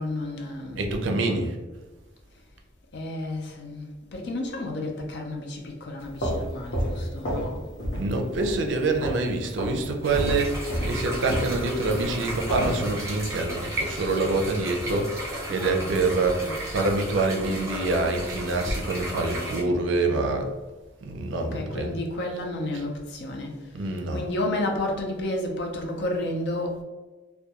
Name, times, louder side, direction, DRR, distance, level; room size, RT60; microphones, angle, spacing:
voice 1, 0.0-1.5 2.9-7.6 9.4-9.5 15.7-16.6 21.4-23.8 24.1-26.8, left 1 dB, 60° left, 0.5 m, -32 dB
voice 2, 0.8-1.5 7.9-10.6 10.9-15.2 15.5-20.5 21.1-21.9 23.7-24.2, right 3 dB, 80° right, 0.4 m, -26 dB
sound 1, 6.0-7.5 7.8-8.1 8.4-9.3 9.6-9.8 10.1-12.8, equal, 80° left, 0.8 m, -29 dB
sound 2, 10.0-19.6, right 1 dB, 15° right, 0.6 m, -34 dB
2.3 x 2.2 x 2.8 m
head